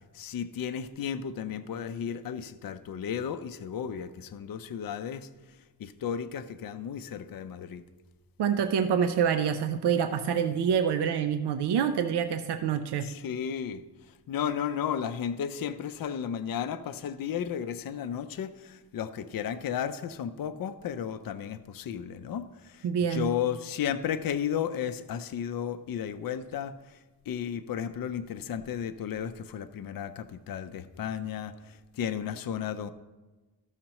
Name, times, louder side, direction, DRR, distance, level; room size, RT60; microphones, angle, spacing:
voice 1, 0.1-5.3 5.8-7.8 13.0-13.8 14.3-27.0 27.3-32.9, left 8 dB, 60° left, 10 dB, 0.5 m, -34 dB
voice 2, 8.4-13.1 22.8-23.3, right 7 dB, 85° right, 9 dB, 0.6 m, -26 dB
14.0 x 6.5 x 2.9 m, 1.2 s
wide cardioid pair, 155°, 39 cm